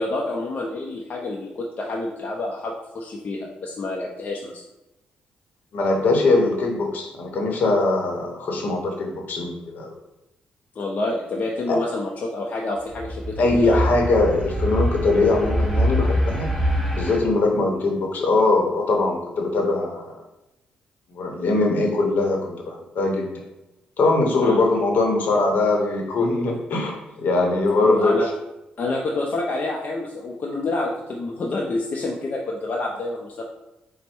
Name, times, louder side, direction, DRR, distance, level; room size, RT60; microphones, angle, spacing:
voice 1, 0.0-4.6 10.8-13.8 24.4-24.6 27.8-28.3 28.8-33.4, left 2 dB, 50° left, -1 dB, 0.5 m, -28 dB
voice 2, 5.7-9.9 11.7-11.8 13.4-16.5 17.0-20.1 21.1-23.4 24.0-28.2, left 2 dB, 70° left, 2 dB, 0.9 m, -21 dB
sound 1, 12.8-17.2, equal, ahead, 0.8 m, -24 dB
4.3 x 2.1 x 4.3 m, 0.94 s
cardioid pair, 70°, 3 cm